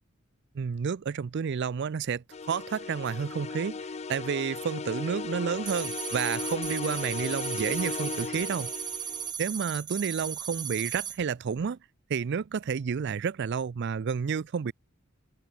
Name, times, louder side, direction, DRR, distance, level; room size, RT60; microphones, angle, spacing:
voice 1, 0.6-3.8 4.1-8.7 9.4-11.8 12.1-14.7, right 6 dB, 55° right, 0.4 m, -30 dB
sound 1, 2.3-9.3, left 4 dB, 30° left, 0.5 m, -36 dB
sound 2, 5.7-11.2, right 7 dB, 20° right, 1.0 m, -36 dB
open air
head